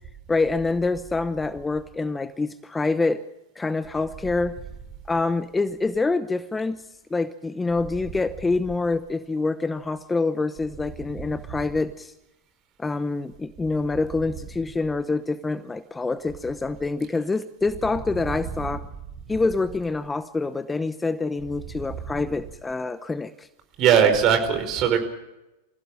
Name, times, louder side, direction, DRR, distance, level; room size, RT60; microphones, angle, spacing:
voice 1, 0.3-3.2 3.6-4.5 5.1-6.8 7.1-12.1 12.8-18.8 19.3-23.5 24.0-24.1, left 3 dB, 10° left, 14 dB, 0.8 m, -26 dB
voice 2, 23.8-25.0, right 8 dB, 40° right, 7 dB, 4.9 m, -19 dB
26.0 x 16.0 x 7.5 m, 0.95 s
figure-of-eight pair, 95°, 0 cm